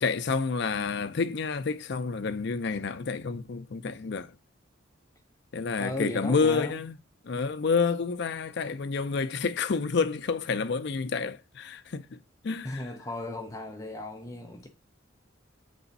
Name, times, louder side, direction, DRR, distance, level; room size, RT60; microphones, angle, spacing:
voice 1, 0.0-4.4 5.5-6.9 7.2-12.2 12.4-12.8, left 5 dB, 60° left, 0.5 m, -29 dB
voice 2, 5.8-6.8 12.6-14.7, left 1 dB, 15° left, 0.6 m, -36 dB
7.9 x 3.4 x 4.0 m
head